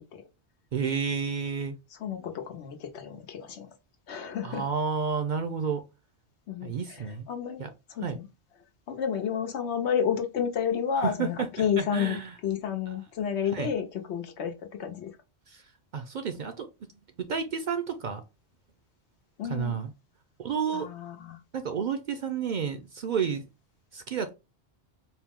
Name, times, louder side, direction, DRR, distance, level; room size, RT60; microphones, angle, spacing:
voice 1, 0.7-1.8 4.4-5.8 6.6-7.3 7.6-7.7 8.0-8.2 11.0-12.3 13.5-13.7 15.5-15.6 15.9-16.7 17.2-18.2 19.5-19.9 20.4-20.9 21.5-23.5 23.9-24.3, right 6 dB, 55° right, 0.5 m, -31 dB
voice 2, 2.0-3.7 4.1-4.7 6.5-7.6 7.9-8.3 8.9-14.5 14.8-15.1 19.4-19.8 20.7-21.4, left 8 dB, 80° left, 1.1 m, -31 dB
4.4 x 2.0 x 3.6 m
omnidirectional pair, 1.1 m